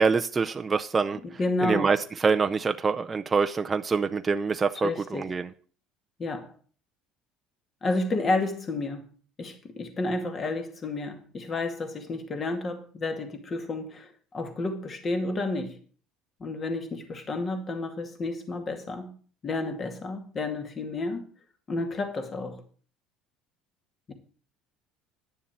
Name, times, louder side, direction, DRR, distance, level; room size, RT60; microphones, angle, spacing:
voice 1, 0.0-1.2 1.6-2.0 2.2-5.5, right 5 dB, 20° right, 0.6 m, -25 dB
voice 2, 1.2-1.9 4.8-5.3 6.2-6.5 7.8-9.0 9.4-15.8 16.4-19.2 19.4-21.2 21.7-22.6 24.1-24.2, left 2 dB, 30° left, 2.2 m, -31 dB
10.5 x 6.9 x 7.5 m
cardioid pair, 120°, 0 cm